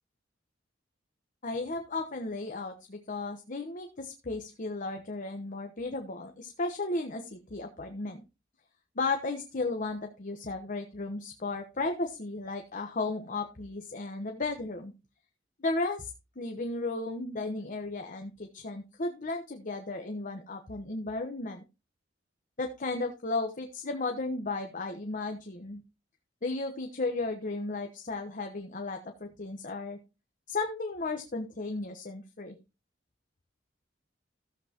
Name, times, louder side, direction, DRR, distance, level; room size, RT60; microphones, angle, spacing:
voice 1, 1.4-8.2 8.9-14.9 15.6-21.6 22.6-25.8 26.4-30.0 30.5-32.6, left 3 dB, 45° left, 5 dB, 1.1 m, -34 dB
14.0 x 7.9 x 2.9 m, 0.28 s
head